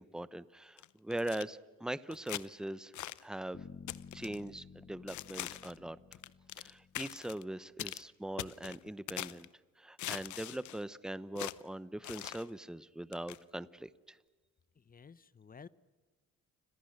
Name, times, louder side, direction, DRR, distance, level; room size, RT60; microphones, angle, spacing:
voice 1, 0.0-2.9 3.2-3.7 4.1-6.0 6.6-9.5 9.8-14.2, right 1 dB, ahead, 16 dB, 0.8 m, -41 dB
sound 1, 0.8-1.4 2.1-2.5 2.9-3.2 3.9-4.4 5.1-5.8 6.1-6.7 7.0-7.4 7.8-8.0 8.4-9.5 10.0-10.8 11.4-11.6 12.0-12.5 13.1-13.4, left 14 dB, 75° left, 0.8 m, -42 dB
Bass guitar, 3.5-7.6, left 6 dB, 45° left, 1.8 m, -53 dB
voice 2, 14.7-15.7, left 6 dB, 30° left, 18 dB, 0.9 m, -53 dB
30.0 x 26.5 x 6.6 m, 1.3 s
cardioid pair, 90°, 30 cm